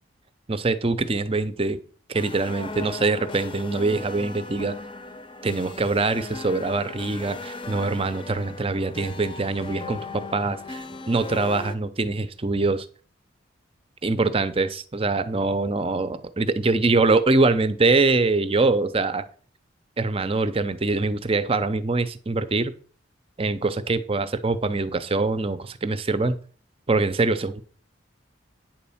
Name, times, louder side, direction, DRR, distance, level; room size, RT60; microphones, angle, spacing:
voice 1, 0.5-1.8 2.1-4.8 5.4-12.9 14.0-19.2 20.0-22.7 23.4-26.4 26.9-27.6, right 3 dB, 30° right, 0.6 m, -24 dB
sound 1, 2.1-11.8, left 3 dB, 25° left, 0.7 m, -38 dB
9.4 x 4.2 x 7.1 m
head